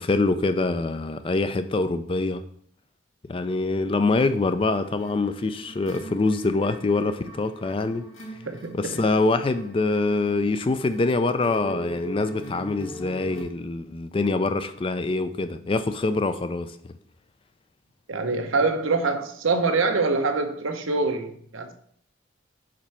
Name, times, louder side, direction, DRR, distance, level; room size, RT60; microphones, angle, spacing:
voice 1, 0.0-2.4 3.3-8.1 8.7-16.8, left 3 dB, 25° left, 0.3 m, -24 dB
sound 1, 4.2-13.4, right 1 dB, 85° left, 2.4 m, -41 dB
voice 2, 8.4-9.0 18.1-21.7, right 3 dB, 85° right, 0.8 m, -25 dB
5.1 x 4.2 x 5.6 m
head